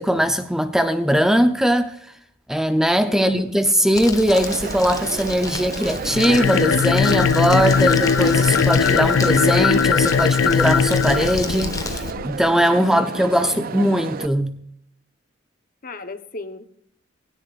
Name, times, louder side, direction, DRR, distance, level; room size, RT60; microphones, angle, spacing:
voice 1, 0.0-1.9 2.5-14.6, equal, 5° right, 0.7 m, -20 dB
voice 2, 3.1-3.5 12.7-13.3 15.8-16.8, left 3 dB, 45° left, 1.1 m, -36 dB
Crumpling crinkling, 3.9-12.1, left 3 dB, 20° left, 1.2 m, -33 dB
Crowd, 4.3-14.3, right 6 dB, 50° right, 0.4 m, -31 dB
sound 1, 6.0-12.3, left 6 dB, 75° left, 0.4 m, -19 dB
17.0 x 16.5 x 2.5 m
head